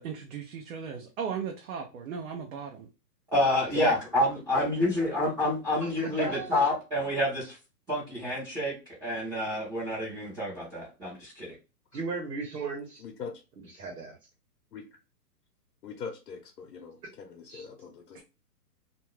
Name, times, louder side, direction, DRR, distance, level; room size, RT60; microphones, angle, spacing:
voice 1, 0.0-2.9 18.1-18.2, right 6 dB, 60° right, 0.7 m, -37 dB
voice 2, 3.3-7.6 7.9-8.7 9.0-11.5, left 1 dB, 10° right, 0.7 m, -28 dB
voice 3, 5.8-6.6 11.9-13.0 13.7-14.2 17.5-17.7, right 4 dB, 90° right, 1.2 m, -35 dB
voice 4, 13.0-13.3 14.7-14.8 15.8-18.2, left 6 dB, 75° left, 0.9 m, -40 dB
2.6 x 2.3 x 3.0 m
hypercardioid pair, 150°, 48 cm